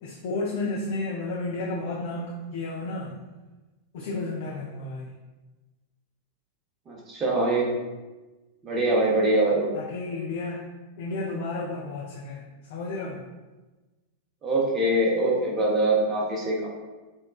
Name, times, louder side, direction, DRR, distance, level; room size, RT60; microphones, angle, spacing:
voice 1, 0.0-3.2 3.9-5.1 9.7-10.7 11.0-12.4 12.7-13.2, left 2 dB, 55° left, -3 dB, 0.3 m, -32 dB
voice 2, 6.9-7.8 8.6-9.7 14.4-16.7, right 2 dB, 25° right, -4 dB, 0.7 m, -23 dB
3.0 x 2.1 x 2.3 m, 1.2 s
figure-of-eight pair, 90°, 0 cm